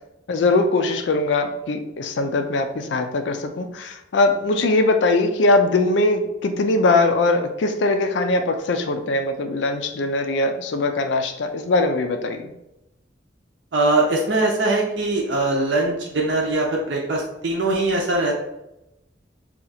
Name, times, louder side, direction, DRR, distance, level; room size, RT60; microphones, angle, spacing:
voice 1, 0.3-12.4, left 2 dB, 75° left, 7 dB, 0.4 m, -21 dB
voice 2, 13.7-18.3, right 2 dB, 80° right, -1 dB, 0.6 m, -21 dB
2.8 x 2.4 x 4.0 m, 0.89 s
head